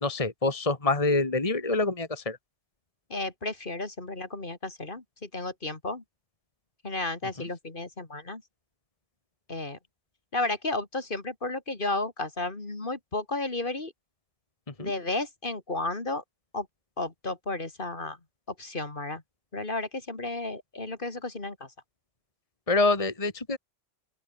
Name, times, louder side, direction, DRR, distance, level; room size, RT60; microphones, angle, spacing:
voice 1, 0.0-2.4 14.8-14.9 22.7-23.6, left 3 dB, 30° left, 2.1 m, -26 dB
voice 2, 3.1-6.0 6.8-8.4 9.5-9.8 10.3-13.9 14.8-16.2 16.5-16.7 17.0-18.2 18.6-19.2 19.5-21.7, left 2 dB, 45° left, 2.7 m, -33 dB
open air
omnidirectional pair, 1.2 m